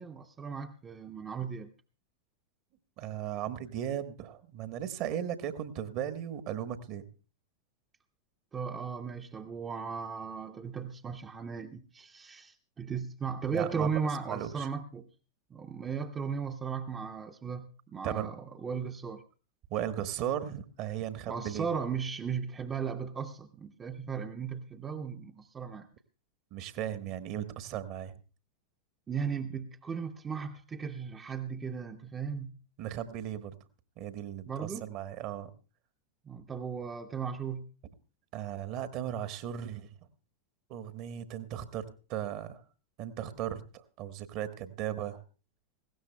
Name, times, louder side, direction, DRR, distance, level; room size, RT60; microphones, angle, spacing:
voice 1, 0.0-1.7 8.5-15.1 15.5-19.2 21.3-25.9 29.1-32.6 34.5-34.9 36.2-37.7, right 6 dB, 20° right, 0.7 m, -36 dB
voice 2, 3.0-7.1 13.5-13.9 14.3-14.7 18.0-18.3 19.7-21.7 26.5-28.1 32.8-33.5 34.0-35.5 38.3-39.9 40.7-42.6 43.0-45.2, right 10 dB, 40° right, 1.1 m, -36 dB
19.5 x 16.5 x 2.2 m
figure-of-eight pair, 90°, 0 cm